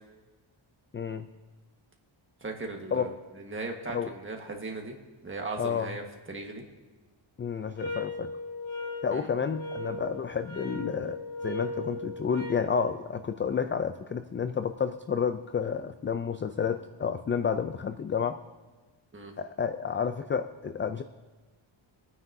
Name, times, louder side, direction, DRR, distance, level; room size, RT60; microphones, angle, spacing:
voice 1, 0.9-1.3 2.9-3.1 3.9-4.1 5.6-5.9 7.4-8.3 9.0-18.4 19.4-21.0, left 6 dB, 30° left, 9 dB, 0.3 m, -30 dB
voice 2, 2.4-5.0 5.2-6.6 9.1-9.3 19.1-19.3, right 3 dB, 25° right, 2 dB, 1.5 m, -38 dB
sound 1, 7.8-12.7, left 2 dB, 80° left, 2.8 m, -37 dB
24.5 x 9.5 x 2.7 m, 1.3 s
wide cardioid pair, 155°, 48 cm